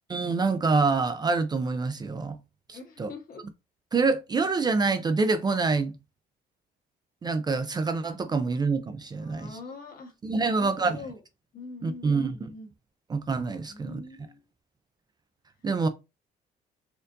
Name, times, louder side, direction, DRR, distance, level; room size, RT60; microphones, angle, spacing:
voice 1, 0.1-2.4 2.7-3.1 3.9-5.9 7.2-9.6 10.2-11.0 11.8-12.4 13.1-14.0 15.6-15.9, right 4 dB, 25° right, 0.4 m, -26 dB
voice 2, 2.7-3.4 9.2-10.1 10.4-11.2 11.5-12.7 13.7-14.4, left 4 dB, 55° left, 1.3 m, -43 dB
4.3 x 2.5 x 2.6 m
cardioid pair, 110°, 17 cm